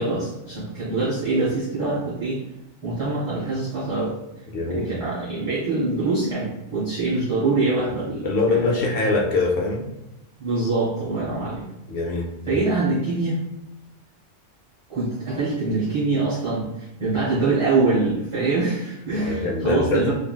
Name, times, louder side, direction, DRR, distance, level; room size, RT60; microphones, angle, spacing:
voice 1, 0.0-2.4 2.8-4.1 4.7-8.8 10.4-11.6 12.1-13.4 14.9-20.1, right 3 dB, 25° right, -10 dB, 0.9 m, -24 dB
voice 2, 4.5-4.9 8.2-9.9 11.9-12.6 19.3-20.1, left 3 dB, 60° left, 1 dB, 0.6 m, -23 dB
3.2 x 2.5 x 2.2 m, 0.94 s
omnidirectional pair, 1.3 m